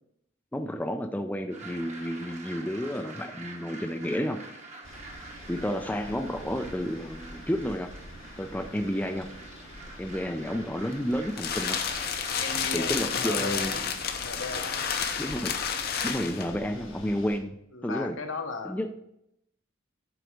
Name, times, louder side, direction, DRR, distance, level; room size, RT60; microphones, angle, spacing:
voice 1, 0.5-4.4 5.5-7.9 8.4-9.3 10.0-11.8 12.7-13.8 15.2-15.6 16.0-17.5 17.8-18.2 18.6-18.9, equal, 10° left, 5 dB, 0.4 m, -31 dB
sound 1, 1.5-12.5, right 3 dB, 35° right, 1.1 m, -46 dB
sound 2, 4.8-17.4, left 1 dB, 90° left, 1.6 m, -47 dB
sound 3, 10.9-16.6, left 7 dB, 50° left, 0.7 m, -31 dB
voice 2, 12.4-13.9 14.2-15.0 17.7-18.9, left 3 dB, 70° left, 4 dB, 1.0 m, -36 dB
7.8 x 4.0 x 4.9 m, 0.77 s
head